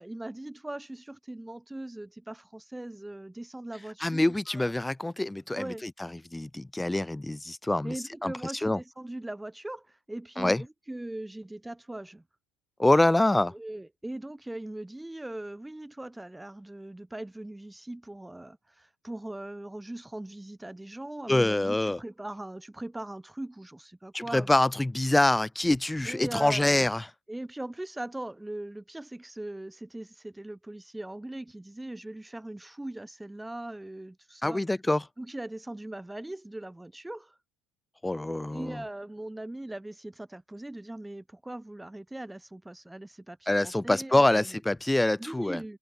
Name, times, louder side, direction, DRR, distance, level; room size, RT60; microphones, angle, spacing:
voice 1, 0.0-4.7 5.5-5.8 7.8-12.2 13.5-24.5 26.1-26.9 27.3-34.6 35.2-37.4 38.5-44.6 45.2-45.8, right 1 dB, 10° right, 3.7 m, -40 dB
voice 2, 4.0-7.9 8.2-8.3 8.6-8.8 10.4-10.6 12.8-13.5 21.3-22.0 24.1-27.0 34.4-35.0 38.0-38.8 43.5-45.6, left 1 dB, 10° left, 1.8 m, -25 dB
figure-of-eight pair, 60°, 0 cm